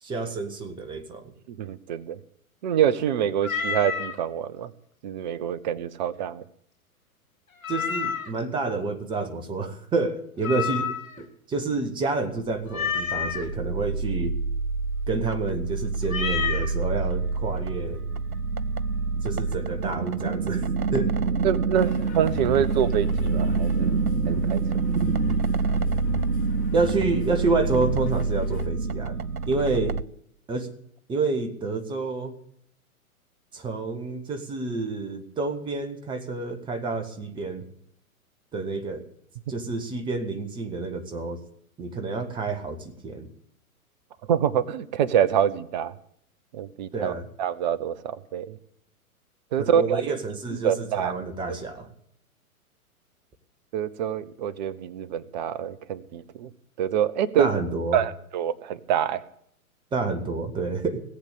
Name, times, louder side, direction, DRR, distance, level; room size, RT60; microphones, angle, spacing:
voice 1, 0.0-1.3 7.7-14.3 15.1-18.0 19.2-21.1 26.7-29.2 29.5-30.0 30.5-30.7 31.1-32.3 33.5-37.6 38.5-39.0 39.5-41.4 41.8-43.3 46.9-47.3 49.6-51.9 57.4-58.0 59.9-61.0, right 3 dB, 10° right, 7 dB, 1.3 m, -29 dB
voice 2, 1.5-2.2 2.6-4.7 5.0-6.4 21.4-24.0 24.3-24.6 44.3-45.9 46.5-48.6 49.5-50.1 50.6-51.1 51.5-51.6 53.7-56.5 56.8-57.5 57.9-59.2, right 9 dB, 30° right, 18 dB, 0.8 m, -26 dB
Meow, 3.4-4.2 7.6-8.4 10.4-11.2 12.7-13.4 16.1-16.7, left 6 dB, 65° left, 2.5 m, -29 dB
sound 1, 12.8-30.0, right 4 dB, 80° right, 0.7 m, -27 dB
sound 2, 21.7-28.7, left 10 dB, 20° left, 1.3 m, -38 dB
18.0 x 8.2 x 8.4 m, 0.68 s
figure-of-eight pair, 110°, 44 cm